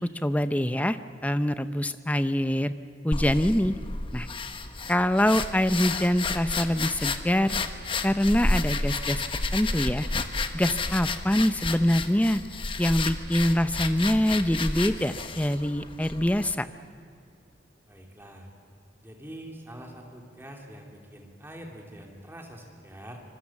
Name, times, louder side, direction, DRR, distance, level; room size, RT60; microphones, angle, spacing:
voice 1, 0.2-2.7 3.0-3.7 4.1-4.3 4.9-7.6 8.0-9.2 9.5-10.1 10.5-12.4 12.8-16.7, left 1 dB, 10° left, 11 dB, 0.6 m, -24 dB
sound 1, 3.1-16.5, left 3 dB, 30° left, 1.0 m, -31 dB
voice 2, 17.9-18.5 19.0-23.2, right 1 dB, 10° right, 1 dB, 2.8 m, -44 dB
25.0 x 24.0 x 7.3 m, 2.4 s
head